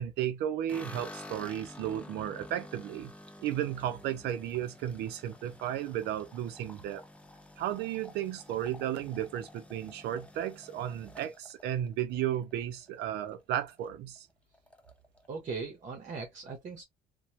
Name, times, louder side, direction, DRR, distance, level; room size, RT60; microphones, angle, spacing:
voice 1, 0.0-3.1 3.4-7.0 7.6-14.3, right 11 dB, 80° right, 0.6 m, -34 dB
sound 1, 0.7-12.9 13.3-13.9 14.2-14.3 14.5-15.3, left 1 dB, 5° left, 0.6 m, -50 dB
voice 2, 15.3-16.8, right 4 dB, 45° right, 0.9 m, -39 dB
3.0 x 2.2 x 2.7 m
cardioid pair, 110°, 17 cm